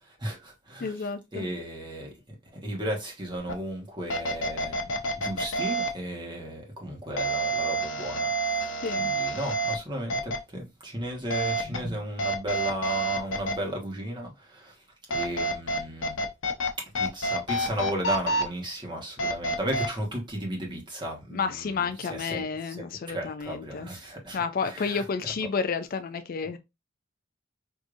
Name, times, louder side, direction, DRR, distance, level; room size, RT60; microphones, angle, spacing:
voice 1, 0.2-0.9 1.3-4.9 5.2-8.7 9.0-14.7 15.1-16.2 16.8-22.9 23.1-25.0, right 1 dB, 25° right, 1.2 m, -35 dB
voice 2, 0.8-1.5 8.8-9.1 21.3-23.9 24.3-26.6, left 5 dB, 45° left, 0.4 m, -31 dB
sound 1, 3.5-3.6 4.1-5.9 7.2-9.8 10.1-10.4 11.3-11.8 12.2-13.5 15.1-16.7 16.9-18.4 19.2-19.9, right 2 dB, 75° left, 0.7 m, -28 dB
4.8 x 2.6 x 2.5 m
head